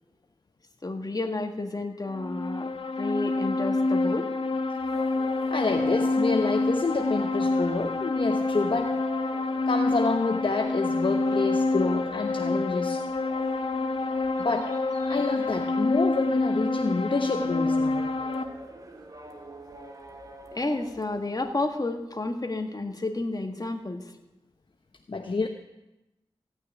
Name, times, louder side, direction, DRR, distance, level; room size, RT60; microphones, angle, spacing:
voice 1, 0.8-2.7 3.0-4.3 20.5-24.0, left 2 dB, 40° left, 5 dB, 1.9 m, -31 dB
sound 1, 2.1-18.4, left 3 dB, 75° left, 1.5 m, -27 dB
sound 2, 4.8-21.8, right 2 dB, 35° right, 2.0 m, -45 dB
voice 2, 5.5-8.9 9.7-13.0 14.4-14.7 15.1-18.0 25.1-25.5, left 3 dB, 55° left, 4 dB, 1.0 m, -28 dB
16.5 x 6.3 x 9.8 m, 0.97 s
cardioid pair, 50°, 10 cm